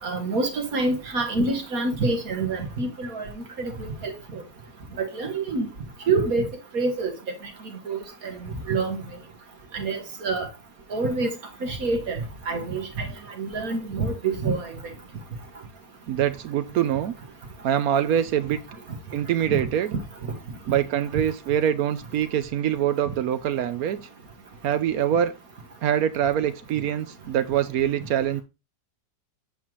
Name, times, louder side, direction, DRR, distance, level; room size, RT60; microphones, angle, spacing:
voice 1, 0.0-3.3 3.6-4.4 5.0-5.7 6.1-6.5 6.7-7.1 7.9-8.3 8.7-9.0 9.7-10.5 10.9-11.3 11.6-12.2 12.5-13.1 13.4-14.7 19.5-19.6, right 3 dB, 55° right, 1.9 m, -26 dB
voice 2, 16.1-17.1 17.6-18.6 19.1-19.9 20.7-24.0 24.6-25.3 25.8-28.4, right 10 dB, 70° right, 0.9 m, -24 dB
8.6 x 5.6 x 3.1 m
omnidirectional pair, 2.0 m